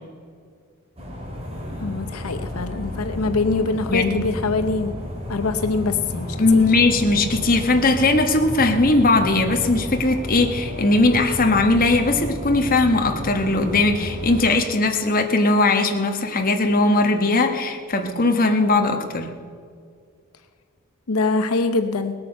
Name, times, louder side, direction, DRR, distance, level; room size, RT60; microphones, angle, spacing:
sound 1, 1.0-14.4, left 1 dB, 30° right, 3.0 m, -32 dB
voice 1, 1.8-5.0 5.3-6.6 21.1-22.1, left 3 dB, 85° left, 8 dB, 0.8 m, -24 dB
voice 2, 3.9-4.2 6.4-19.3, left 2 dB, 40° left, 5 dB, 1.3 m, -19 dB
19.0 x 8.7 x 6.6 m, 2.1 s
head